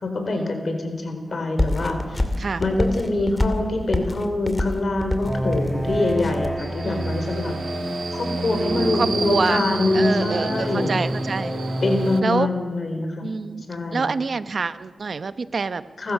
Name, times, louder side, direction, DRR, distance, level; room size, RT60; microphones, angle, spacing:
voice 1, 0.0-2.3 2.6-7.5 8.1-10.9 11.8-13.3 13.7-14.1 16.0-16.1, left 2 dB, 65° left, 5 dB, 4.1 m, -24 dB
sound 1, 1.6-6.6, left 1 dB, 25° left, 2.5 m, -27 dB
sound 2, 5.2-12.1, right 1 dB, ahead, 4.9 m, -27 dB
Subway metro underground, 6.6-12.2, right 5 dB, 85° right, 1.3 m, -34 dB
voice 2, 6.8-7.2 8.9-9.6 9.9-11.6 12.2-12.5 13.2-13.6 13.9-15.8, right 4 dB, 65° right, 13 dB, 0.8 m, -26 dB
30.0 x 13.0 x 6.5 m, 1.5 s
cardioid pair, 45°, 0 cm